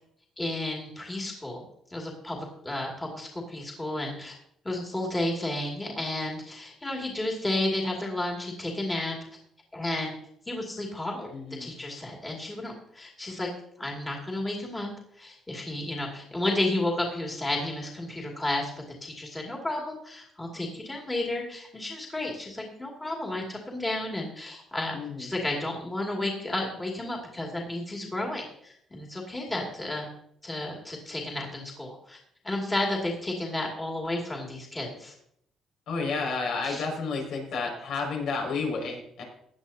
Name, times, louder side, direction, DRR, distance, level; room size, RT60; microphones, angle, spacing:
voice 1, 0.4-1.6 1.9-4.4 4.6-9.2 9.7-10.1 10.5-11.3 11.6-13.5 13.8-14.9 15.2-18.7 19.0-30.1 30.4-32.2 32.4-35.1 36.6-36.8, left 1 dB, 15° left, -1 dB, 2.4 m, -32 dB
voice 2, 11.3-11.7 24.9-25.3 35.9-39.2, left 4 dB, 75° left, 0 dB, 5.5 m, -31 dB
17.0 x 10.5 x 2.8 m, 0.70 s
cardioid pair, 135°, 0 cm